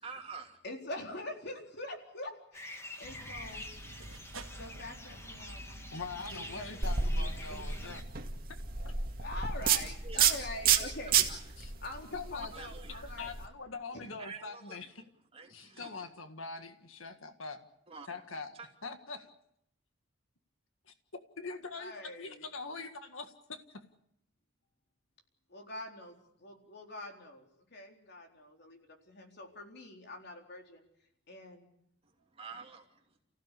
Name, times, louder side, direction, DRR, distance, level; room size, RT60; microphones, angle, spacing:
voice 1, 0.0-0.6 9.8-10.2 10.7-11.4 12.5-13.1 14.2-14.9 15.4-15.5 15.8-16.0 17.9-18.1 18.5-18.7 32.3-33.0, right 4 dB, 30° right, 2 dB, 2.9 m, -47 dB
voice 2, 0.6-3.7 4.5-5.6 6.1-7.9 9.2-11.2 11.8-13.5 13.9-14.1 21.7-22.5 25.5-30.8 31.3-31.7, left 2 dB, 55° left, 2 dB, 4.2 m, -45 dB
sound 1, 2.5-8.0, left 1 dB, 15° left, 1.9 m, -47 dB
sound 2, 3.0-8.1, right 1 dB, 80° right, 2.1 m, -49 dB
voice 3, 5.9-8.0 8.8-8.9 11.6-11.7 12.0-12.5 13.2-14.9 15.8-17.6 18.1-18.6 18.8-19.3 20.9-21.0 21.4-23.8, left 4 dB, 80° left, 7 dB, 1.8 m, -43 dB
sound 3, 6.8-13.4, right 7 dB, 45° right, 2.2 m, -31 dB
30.0 x 16.0 x 8.4 m, 0.77 s
head